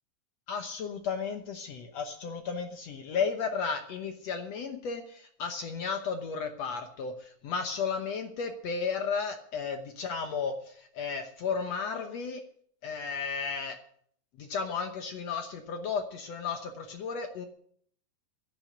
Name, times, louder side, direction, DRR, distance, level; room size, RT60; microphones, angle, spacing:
voice 1, 0.5-12.4 12.8-13.8 14.4-17.5, left 5 dB, 65° left, 6 dB, 1.8 m, -34 dB
11.5 x 9.8 x 8.7 m, 0.62 s
omnidirectional pair, 4.0 m